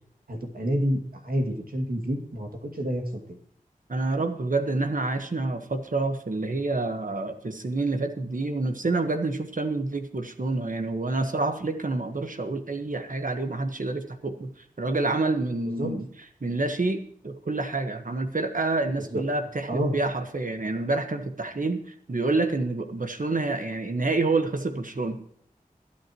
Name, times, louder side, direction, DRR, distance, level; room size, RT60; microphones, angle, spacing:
voice 1, 0.3-3.4 15.8-15.9 19.1-19.2 19.7-19.9, equal, 80° right, 1 dB, 2.4 m, -29 dB
voice 2, 3.9-14.5 14.8-16.1 16.4-21.8 22.1-25.3, right 3 dB, 65° right, 6 dB, 1.5 m, -28 dB
23.0 x 8.8 x 3.1 m, 0.63 s
wide cardioid pair, 40°, 15 cm